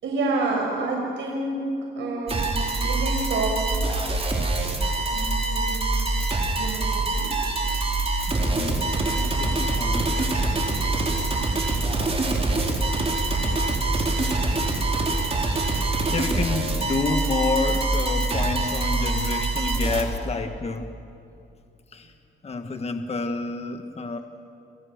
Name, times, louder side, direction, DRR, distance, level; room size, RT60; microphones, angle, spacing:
voice 1, 0.0-1.7 2.0-4.0 5.1-6.0 6.5-7.3 7.9-8.1, right 2 dB, 70° right, -1 dB, 5.7 m, -29 dB
sound 1, 2.3-20.0, right 2 dB, 30° right, 4.6 m, -24 dB
voice 2, 8.3-10.2 15.6-20.9 21.9-22.1 22.4-24.2, left 3 dB, 30° left, 6 dB, 1.6 m, -29 dB
29.0 x 28.0 x 6.7 m, 2.6 s
cardioid pair, 90°, 20 cm